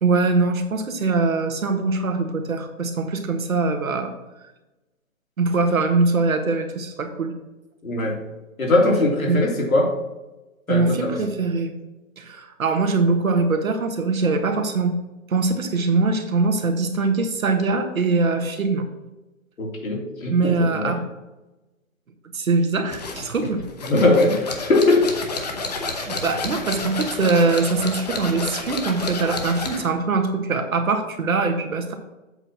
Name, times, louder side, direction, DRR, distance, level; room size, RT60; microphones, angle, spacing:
voice 1, 0.0-4.1 5.4-7.3 9.3-9.4 10.7-11.7 12.2-15.0 15.3-18.9 20.3-21.0 22.3-23.6 25.9-31.9, right 3 dB, 85° right, 6 dB, 1.6 m, -22 dB
voice 2, 7.8-8.2 8.6-9.9 10.7-11.2 19.6-20.9 23.9-25.1, left 2 dB, 85° left, -1 dB, 3.2 m, -20 dB
sound 1, 22.9-29.9, left 3 dB, 30° left, 1.0 m, -30 dB
7.8 x 4.5 x 6.2 m, 1.1 s
hypercardioid pair, 170°, 40 cm